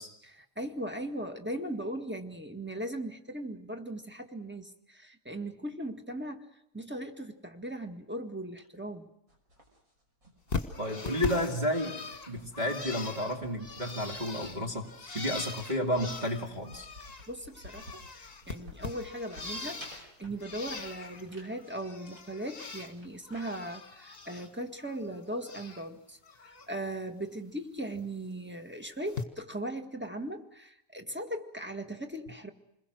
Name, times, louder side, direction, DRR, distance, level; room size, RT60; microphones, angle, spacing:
voice 1, 0.2-9.1 17.3-32.5, right 1 dB, 5° right, 5 dB, 1.7 m, -39 dB
sound 1, 9.3-23.4, left 1 dB, 55° right, 6.3 m, -55 dB
Bird, 10.5-17.3 17.5-20.1 20.4-21.2 21.6-22.9 23.2-24.5 24.8-25.9 26.2-26.7 27.9-28.1 29.1-29.2, left 4 dB, 35° left, 2.0 m, -41 dB
voice 2, 10.8-12.0 12.3-16.9, left 1 dB, 25° right, 1 dB, 2.4 m, -32 dB
28.5 x 21.5 x 6.3 m, 0.81 s
omnidirectional pair, 1.7 m